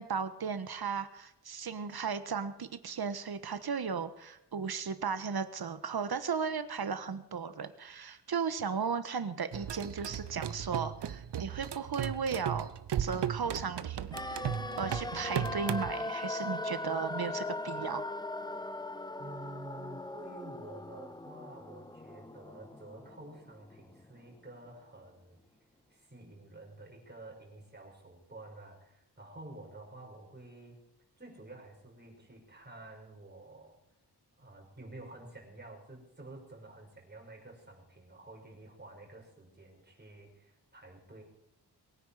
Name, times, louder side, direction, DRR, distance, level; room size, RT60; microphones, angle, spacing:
voice 1, 0.0-12.7 13.0-18.1, right 6 dB, 65° right, 11 dB, 1.4 m, -36 dB
sound 1, 9.5-15.9, right 9 dB, 90° right, 0.8 m, -36 dB
sound 2, 14.1-24.1 24.3-24.4, left 2 dB, 10° left, 0.6 m, -40 dB
voice 2, 19.2-25.4 25.9-30.8 31.2-33.8 34.4-41.2, right 2 dB, 25° right, -1 dB, 5.8 m, -50 dB
22.5 x 9.9 x 5.0 m, 0.84 s
wide cardioid pair, 140°, 40 cm